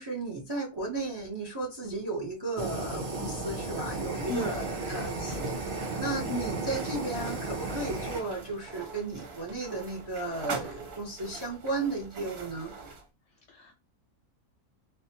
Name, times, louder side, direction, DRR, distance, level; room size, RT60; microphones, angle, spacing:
voice 1, 0.0-5.5 6.0-12.7, right 2 dB, 25° right, 0.5 m, -34 dB
Fire, 2.6-8.2, right 3 dB, 50° right, 1.4 m, -34 dB
sound 1, 4.2-13.1, right 4 dB, 80° right, 1.3 m, -43 dB
voice 2, 4.3-4.7 6.3-6.5 13.5-13.8, left 2 dB, 65° left, 0.8 m, -36 dB
3.4 x 2.1 x 2.7 m
omnidirectional pair, 1.6 m